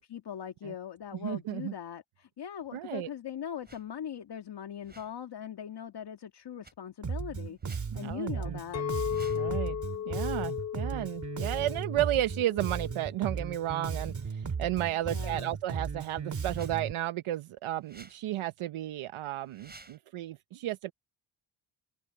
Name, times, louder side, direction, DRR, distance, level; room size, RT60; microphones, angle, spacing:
voice 1, 0.0-7.6 7.9-8.8 15.1-15.6, left 9 dB, 55° left, 2.2 m, -40 dB
voice 2, 1.2-1.7 2.7-3.1 8.0-8.6 9.3-9.8 10.1-20.9, right 13 dB, 75° right, 0.9 m, -33 dB
sound 1, 3.6-3.9 4.7-5.2 6.6-6.7 7.6-7.9 8.9-9.5 11.4-11.6 12.7-12.9 14.8-15.6 16.5-16.7 17.8-18.2 19.4-20.0, right 3 dB, 20° right, 5.0 m, -55 dB
Bass guitar, 7.0-16.9, right 5 dB, 35° right, 2.2 m, -36 dB
Chink clink, 8.7-13.1 13.5-13.9, left 10 dB, 30° left, 0.8 m, -36 dB
cardioid pair, 110°, 49 cm